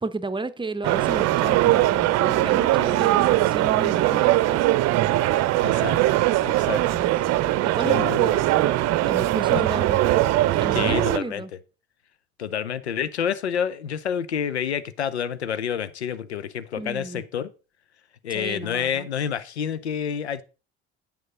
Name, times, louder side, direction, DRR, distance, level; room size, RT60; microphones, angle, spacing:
voice 1, 0.0-4.7 6.9-8.1 9.0-10.0 10.6-11.5 16.8-17.2 18.3-19.1, right 3 dB, 15° right, 0.8 m, -32 dB
sound 1, 0.8-11.2, right 15 dB, 50° right, 0.7 m, -21 dB
voice 2, 5.6-6.0 6.4-6.8 7.8-8.4 9.5-9.6 10.7-11.4 12.4-17.5 18.2-20.4, left 8 dB, 90° left, 0.7 m, -28 dB
9.3 x 5.2 x 5.4 m
figure-of-eight pair, 55°, 32 cm